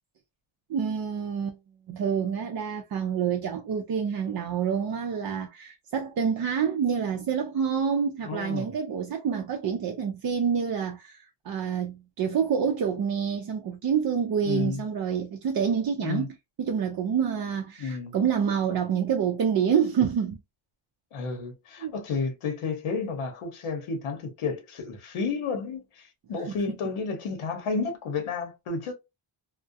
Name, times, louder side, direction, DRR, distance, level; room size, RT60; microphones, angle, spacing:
voice 1, 0.7-1.6 1.9-16.3 16.6-20.4 21.8-21.9, right 7 dB, 50° right, 0.5 m, -27 dB
voice 2, 8.2-8.7 14.4-14.8 16.0-16.3 17.8-18.2 21.1-28.9, left 4 dB, 80° left, 0.8 m, -31 dB
2.3 x 2.1 x 2.5 m
cardioid pair, 80°, 49 cm